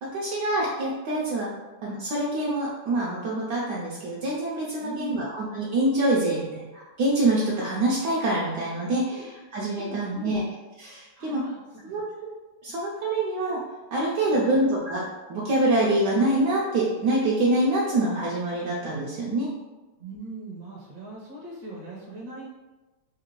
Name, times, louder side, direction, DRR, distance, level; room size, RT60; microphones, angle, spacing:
voice 1, 0.0-1.5 1.8-10.4 10.8-11.4 11.8-12.0 12.6-13.6 13.9-15.0 15.3-19.5, right 1 dB, 75° right, -5 dB, 1.0 m, -25 dB
voice 2, 4.8-5.3 9.1-9.3 9.7-10.4 11.1-11.6 11.9-12.0 14.2-14.6 20.0-22.5, right 2 dB, 50° right, -4 dB, 1.0 m, -40 dB
3.4 x 2.4 x 3.0 m, 1.2 s
omnidirectional pair, 2.3 m